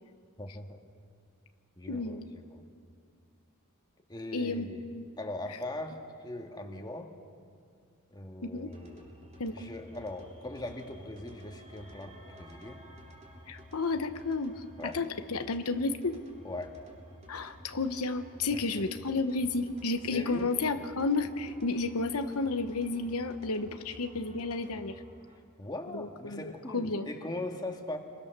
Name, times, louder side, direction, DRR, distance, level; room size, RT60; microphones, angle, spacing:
voice 1, 0.4-0.8 1.8-2.6 4.1-4.8 5.2-6.0 6.2-7.1 8.1-9.0 9.5-12.8 14.8-15.0 16.4-16.7 18.5-18.6 20.1-20.5 25.6-28.0, left 1 dB, 20° left, 3 dB, 2.0 m, -40 dB
voice 2, 1.9-2.3 4.3-5.1 5.5-5.6 8.4-8.7 9.4-9.7 13.5-16.2 17.3-25.0 25.9-27.1, left 3 dB, 80° left, 8 dB, 1.0 m, -32 dB
sound 1, 8.7-25.4, equal, 30° right, 3.4 m, -52 dB
27.5 x 22.5 x 6.8 m, 2.2 s
head